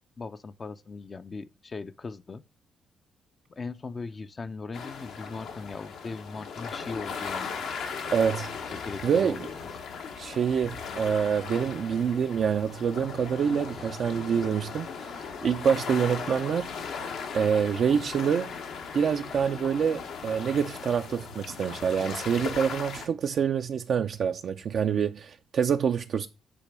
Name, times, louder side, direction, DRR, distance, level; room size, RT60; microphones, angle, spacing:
voice 1, 0.2-2.4 3.5-7.8 8.7-9.4 24.9-25.1, left 4 dB, 40° left, 0.5 m, -39 dB
sound 1, 4.7-23.1, left 5 dB, 75° left, 1.0 m, -38 dB
voice 2, 8.1-8.5 9.0-9.4 10.2-14.9 15.2-16.7 17.3-18.5 18.9-26.3, right 7 dB, 60° right, 0.4 m, -26 dB
8.4 x 2.9 x 6.0 m
supercardioid pair, 60°, 0 cm